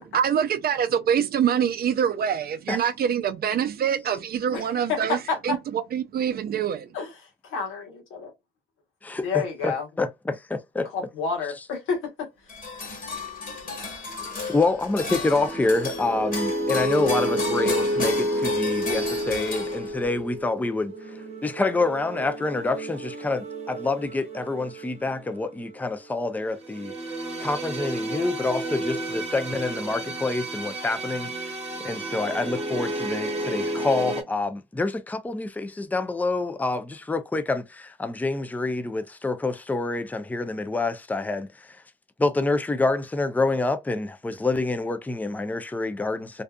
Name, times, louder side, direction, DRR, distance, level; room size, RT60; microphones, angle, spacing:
voice 1, 0.1-5.2 5.4-6.9, right 8 dB, 50° right, 0.4 m, -25 dB
voice 2, 4.5-5.6 6.9-7.1 7.4-7.9 8.1-8.3 9.2-9.9 10.9-12.3, left 5 dB, 90° left, 1.1 m, -29 dB
voice 3, 9.0-10.9 14.5-20.9 21.4-26.9 27.4-31.5 31.8-41.7 42.2-46.4, left 3 dB, 10° left, 0.4 m, -27 dB
sound 1, 12.5-20.2, left 3 dB, 45° left, 1.3 m, -33 dB
sound 2, 15.1-34.2, right 1 dB, 35° right, 0.9 m, -31 dB
2.6 x 2.3 x 2.2 m
cardioid pair, 90°, 20 cm